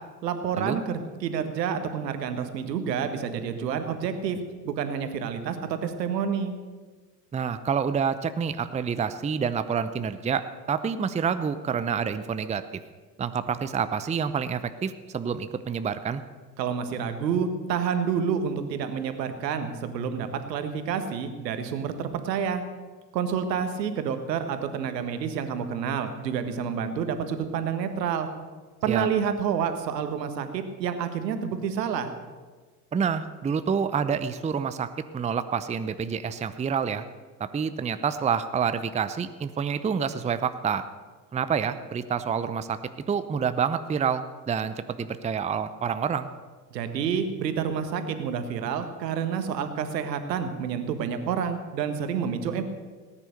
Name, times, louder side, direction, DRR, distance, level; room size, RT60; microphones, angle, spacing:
voice 1, 0.2-6.5 16.6-22.6 23.1-28.3 28.8-32.1 46.7-52.6, right 7 dB, 75° right, 9 dB, 1.6 m, -29 dB
voice 2, 7.3-12.6 13.2-16.2 28.9-29.1 32.9-37.0 37.4-40.9 41.3-42.8 43.1-46.3, right 6 dB, 15° right, 12 dB, 0.6 m, -28 dB
18.5 x 9.8 x 6.6 m, 1.4 s
hypercardioid pair, 70°, 50 cm